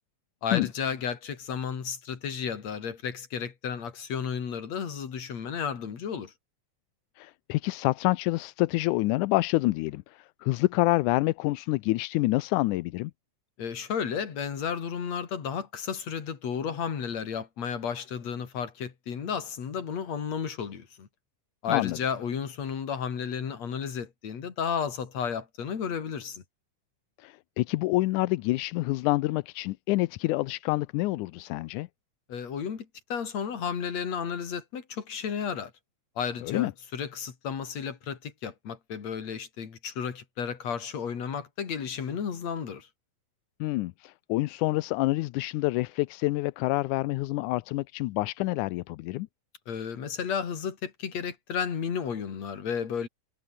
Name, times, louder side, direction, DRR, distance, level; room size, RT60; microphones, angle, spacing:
voice 1, 0.4-6.3 13.6-21.1 21.6-26.4 32.3-35.7 36.2-42.9 49.7-53.1, left 7 dB, 60° left, 4.0 m, -33 dB
voice 2, 7.2-13.1 21.7-22.0 27.2-31.9 36.4-36.7 43.6-49.3, left 19 dB, 85° left, 2.1 m, -27 dB
omnidirectional pair, 3.6 m